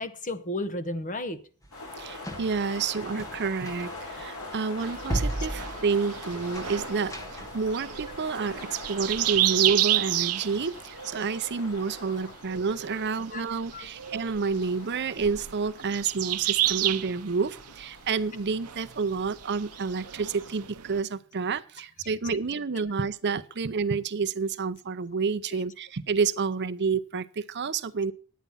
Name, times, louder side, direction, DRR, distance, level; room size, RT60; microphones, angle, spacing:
voice 1, 0.0-1.4 2.3-2.4 12.9-13.0 13.3-13.4 13.7-13.9 22.7-22.8 25.5-25.6, left 1 dB, 35° left, 10 dB, 1.1 m, -34 dB
sound 1, 1.6-7.7, right 1 dB, 15° left, 1.3 m, -36 dB
sound 2, 1.7-20.5, left 2 dB, 75° left, 4.2 m, -44 dB
voice 2, 2.0-28.1, right 5 dB, 50° right, 11 dB, 0.6 m, -29 dB
sound 3, 4.8-21.0, right 14 dB, 90° right, 0.7 m, -32 dB
10.5 x 9.1 x 5.5 m, 0.41 s
head